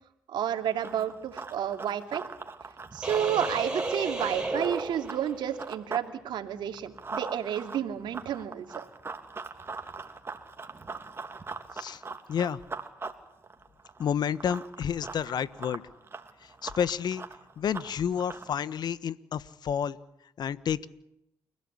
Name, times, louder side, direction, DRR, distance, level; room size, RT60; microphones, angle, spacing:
voice 1, 0.3-2.2 2.9-8.8, right 9 dB, 70° right, 7 dB, 2.7 m, -31 dB
Run, 0.6-6.1 6.4-18.6, right 4 dB, 30° right, 2.9 m, -41 dB
sound 1, 3.0-5.7, right 2 dB, 10° right, 7.2 m, -33 dB
voice 2, 12.3-12.6 14.0-15.8 16.4-17.2 17.6-20.0 20.4-20.9, left 8 dB, 60° left, 17 dB, 1.3 m, -30 dB
30.0 x 16.5 x 9.8 m, 0.82 s
hypercardioid pair, 50°, 8 cm